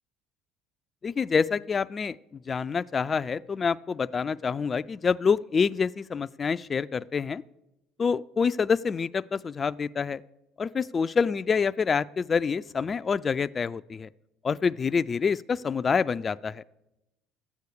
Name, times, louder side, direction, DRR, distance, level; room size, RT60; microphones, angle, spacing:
voice 1, 1.0-2.2 2.5-7.4 8.0-10.2 10.6-14.1 14.4-16.6, left 5 dB, 35° left, 14 dB, 0.3 m, -27 dB
12.0 x 8.3 x 6.6 m, 0.93 s
supercardioid pair, 80°, 0 cm